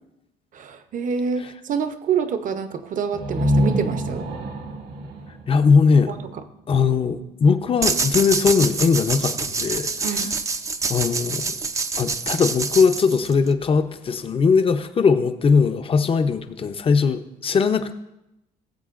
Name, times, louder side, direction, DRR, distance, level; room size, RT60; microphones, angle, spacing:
voice 1, 0.5-4.3 6.1-6.2 10.0-10.3, right 6 dB, 50° right, 10 dB, 0.8 m, -27 dB
sound 1, 3.1-6.8, equal, 75° right, 1.8 m, -26 dB
voice 2, 5.5-6.1 6.7-10.3 10.9-11.5 12.0-17.9, left 5 dB, 35° left, 9 dB, 0.7 m, -20 dB
sound 2, 7.8-13.5, right 4 dB, 20° right, 0.5 m, -26 dB
18.0 x 7.8 x 2.5 m, 0.91 s
cardioid pair, 110°, 17 cm